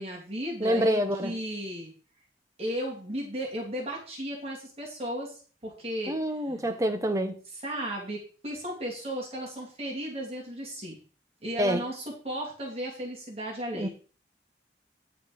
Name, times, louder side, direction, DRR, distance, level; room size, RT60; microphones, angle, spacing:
voice 1, 0.0-1.9 2.6-6.8 7.6-11.0 11.4-13.9, equal, 35° right, 2.6 m, -35 dB
voice 2, 0.6-1.4 6.1-7.4 11.6-11.8 13.7-13.9, equal, 20° right, 0.8 m, -27 dB
10.0 x 5.0 x 5.1 m
head